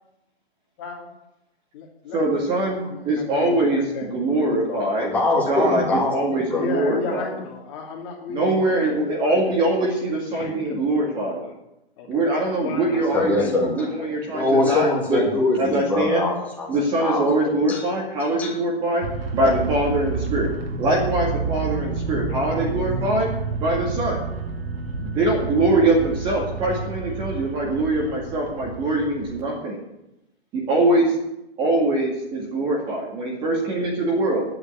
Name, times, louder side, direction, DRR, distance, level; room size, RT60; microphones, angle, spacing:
voice 1, 0.8-1.1 1.7-4.9 6.5-9.6 10.3-11.5 12.0-12.2 12.6-14.2, left 5 dB, 25° left, 0 dB, 2.8 m, -35 dB
voice 2, 2.1-3.8 4.1-5.1 5.5-7.3 8.3-11.4 12.1-15.2 15.6-16.3 16.7-19.0 19.3-20.5 20.8-23.3 23.6-24.2 25.0-29.8 30.5-31.1 31.6-34.4, right 2 dB, 15° right, -2 dB, 2.1 m, -23 dB
voice 3, 5.0-6.7 13.1-13.7 14.3-16.7 17.0-17.2 17.7-17.8 18.4-18.5, left 2 dB, 5° left, -4 dB, 2.6 m, -23 dB
sound 1, 19.0-29.4, right 4 dB, 65° right, 2.7 m, -29 dB
10.5 x 8.8 x 9.0 m, 0.86 s
hypercardioid pair, 165°, 32 cm